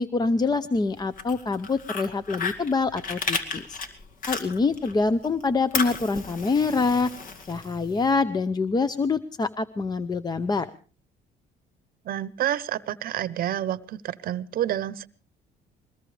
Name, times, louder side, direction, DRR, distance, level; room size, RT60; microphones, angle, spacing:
voice 1, 0.0-3.8 4.3-7.1 7.5-10.7, left 4 dB, 25° left, 13 dB, 0.7 m, -25 dB
Fire, 1.0-4.9 5.2-8.0, left 4 dB, 55° left, 2.2 m, -33 dB
voice 2, 12.0-15.1, right 11 dB, 60° right, 18 dB, 0.8 m, -29 dB
22.0 x 19.5 x 3.3 m, 0.36 s
cardioid pair, 110°, 17 cm